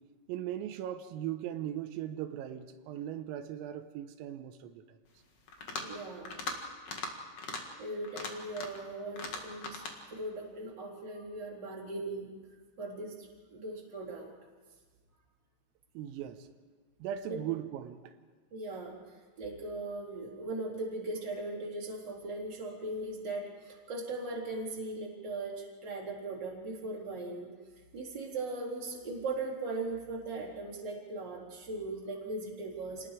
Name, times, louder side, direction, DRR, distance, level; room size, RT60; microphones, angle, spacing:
voice 1, 0.3-5.0 16.0-16.5 17.0-18.1, right 11 dB, 90° right, 8 dB, 3.6 m, -38 dB
sound 1, 5.5-5.9 6.2-6.6 6.8-7.1 7.4-7.6 8.0-8.8 9.2-9.9, left 4 dB, 65° left, 1.6 m, -39 dB
voice 2, 5.8-6.3 7.8-9.8 10.1-12.3 12.8-14.3 17.3-17.4 18.5-27.5 27.9-33.1, right 2 dB, 25° right, -4 dB, 3.7 m, -39 dB
28.5 x 19.5 x 4.9 m, 1.4 s
omnidirectional pair, 6.0 m